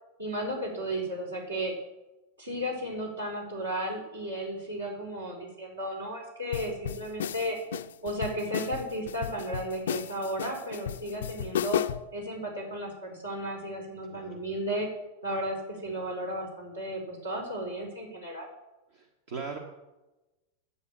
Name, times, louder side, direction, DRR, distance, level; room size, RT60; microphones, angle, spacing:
voice 1, 0.2-1.7 2.4-7.6 8.0-11.8 12.1-14.9 15.2-18.5, right 1 dB, 75° right, -1 dB, 4.3 m, -34 dB
sound 1, 6.5-12.1, left 10 dB, 60° left, 0.4 m, -33 dB
voice 2, 14.1-14.4 18.9-19.6, right 5 dB, 55° right, 3 dB, 1.4 m, -39 dB
12.0 x 7.1 x 7.4 m, 1.0 s
figure-of-eight pair, 90°, 0 cm